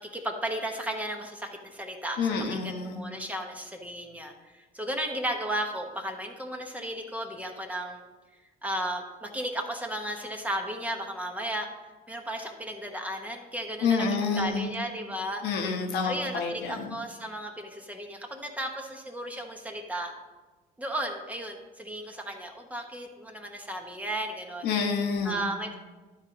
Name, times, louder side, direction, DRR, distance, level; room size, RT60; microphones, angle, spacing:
voice 1, 0.1-2.2 2.5-8.0 8.6-11.7 12.1-15.4 16.0-20.1 20.8-24.7 25.2-25.8, right 1 dB, 10° right, 2 dB, 1.1 m, -34 dB
voice 2, 2.2-3.1 13.8-14.7 15.4-17.0 24.6-25.4, left 5 dB, 85° left, 3 dB, 1.3 m, -28 dB
11.5 x 4.4 x 5.1 m, 1.2 s
cardioid pair, 110°, 17 cm